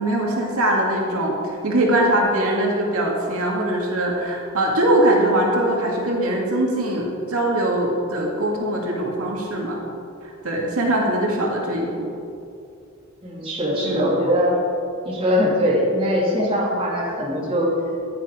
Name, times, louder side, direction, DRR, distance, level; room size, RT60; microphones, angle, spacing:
voice 1, 0.0-9.8 10.2-12.1 13.8-14.1, right 1 dB, 85° right, -1 dB, 2.1 m, -22 dB
voice 2, 13.2-14.5 15.0-17.7, equal, 25° right, -5 dB, 3.2 m, -21 dB
15.0 x 10.0 x 5.1 m, 2.6 s
head